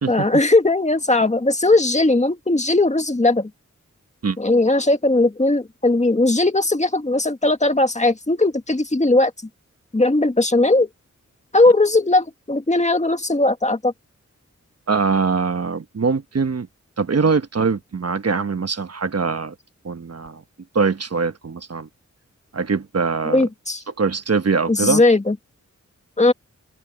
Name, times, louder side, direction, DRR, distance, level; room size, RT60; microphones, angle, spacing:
voice 1, 0.1-3.5 4.4-9.3 9.9-10.9 11.5-13.9 23.3-23.8 24.7-25.4 26.2-26.3, left 2 dB, 25° left, 1.8 m, -18 dB
voice 2, 14.9-16.7 17.0-19.5 19.8-20.4 20.7-21.9 22.5-23.5 24.0-25.0, right 4 dB, 55° right, 1.2 m, -22 dB
open air
wide cardioid pair, 85°, 30 cm